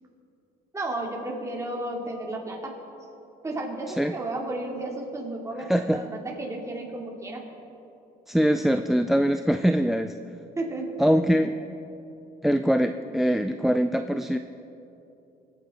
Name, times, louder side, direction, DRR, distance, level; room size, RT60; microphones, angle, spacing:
voice 1, 0.7-2.8 3.4-7.5 10.6-10.9, right 2 dB, 15° right, -1 dB, 2.6 m, -33 dB
voice 2, 5.6-6.0 8.3-10.1 11.0-11.6 12.4-14.4, equal, ahead, 9 dB, 0.3 m, -23 dB
22.5 x 9.2 x 4.3 m, 2.9 s
cardioid pair, 110°, 17 cm